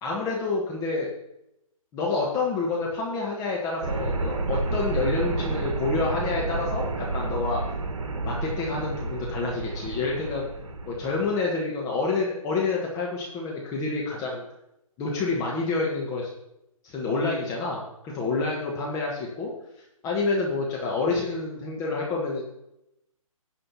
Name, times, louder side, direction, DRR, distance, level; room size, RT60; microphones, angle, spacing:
voice 1, 0.0-1.1 1.9-7.6 8.2-10.5 10.9-14.4 15.0-16.3 16.8-19.5 20.0-22.4, left 3 dB, 20° left, -3 dB, 1.4 m, -28 dB
sound 1, 3.8-11.3, right 3 dB, 60° right, 1.5 m, -30 dB
11.0 x 5.1 x 5.7 m, 0.85 s
figure-of-eight pair, 140°, 18 cm